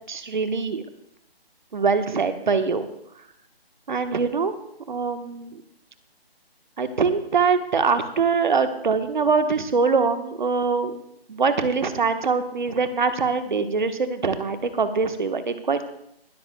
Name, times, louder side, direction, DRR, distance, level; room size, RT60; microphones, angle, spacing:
voice 1, 0.1-0.8 1.7-2.9 3.9-4.5 4.9-5.6 6.8-11.0 11.3-15.8, right 5 dB, 50° right, 9 dB, 1.2 m, -23 dB
20.5 x 12.5 x 2.3 m, 0.75 s
figure-of-eight pair, 165°, 31 cm